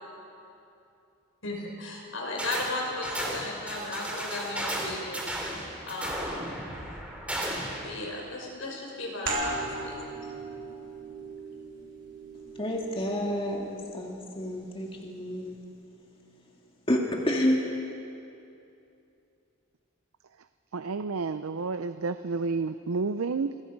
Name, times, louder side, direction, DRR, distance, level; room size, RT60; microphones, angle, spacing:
voice 1, 1.4-5.2 5.9-6.3 7.8-10.0, left 2 dB, 70° left, 0 dB, 5.2 m, -35 dB
sound 1, 2.4-2.7 3.0-7.8, right 1 dB, 5° right, 2.8 m, -34 dB
sound 2, 9.3-14.5, right 2 dB, 55° right, 4.3 m, -37 dB
voice 2, 12.6-15.6 16.9-17.6, equal, 25° left, 0 dB, 1.9 m, -29 dB
voice 3, 20.7-23.6, right 4 dB, 85° right, 11 dB, 0.6 m, -30 dB
27.5 x 21.5 x 5.3 m, 2.7 s
head